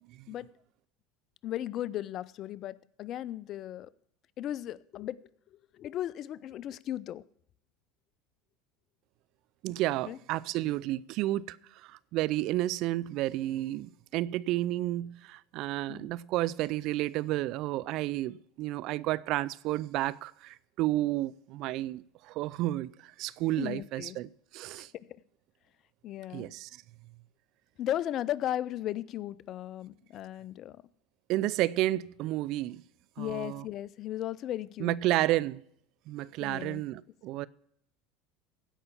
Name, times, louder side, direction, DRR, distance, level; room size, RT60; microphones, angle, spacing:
voice 1, 1.4-3.9 4.4-5.2 5.7-7.2 10.1-10.2 15.9-16.1 23.6-24.2 24.8-25.2 26.0-26.5 27.8-30.8 33.2-35.0 36.4-36.8, left 12 dB, 50° left, 0.5 m, -36 dB
voice 2, 9.6-24.9 26.3-26.8 31.3-32.8 33.2-33.6 34.8-35.6 36.1-37.5, right 16 dB, 60° right, 0.4 m, -31 dB
16.0 x 5.7 x 6.8 m
supercardioid pair, 95°, 0 cm